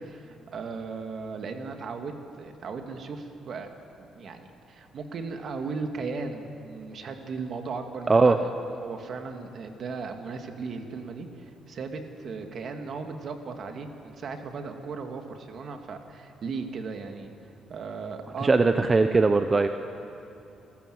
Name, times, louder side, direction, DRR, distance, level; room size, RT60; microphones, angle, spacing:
voice 1, 0.0-3.7 4.0-17.3 17.7-18.5, right 4 dB, 60° right, 5 dB, 2.3 m, -37 dB
voice 2, 18.4-19.7, right 3 dB, 30° right, 7 dB, 0.9 m, -20 dB
28.0 x 14.5 x 7.9 m, 2.8 s
cardioid pair, 90°, 0 cm